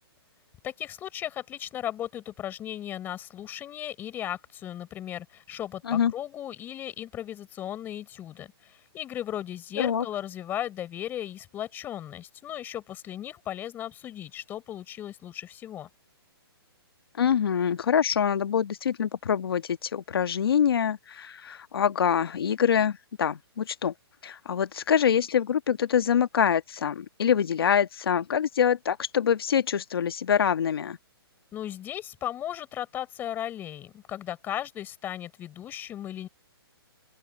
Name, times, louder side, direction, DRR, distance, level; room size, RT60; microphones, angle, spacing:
voice 1, 0.6-15.9 31.5-36.3, left 11 dB, 15° left, 5.6 m, -36 dB
voice 2, 17.2-23.9 24.2-31.0, left 8 dB, 65° left, 1.5 m, -25 dB
open air
hypercardioid pair, 160°, 13 cm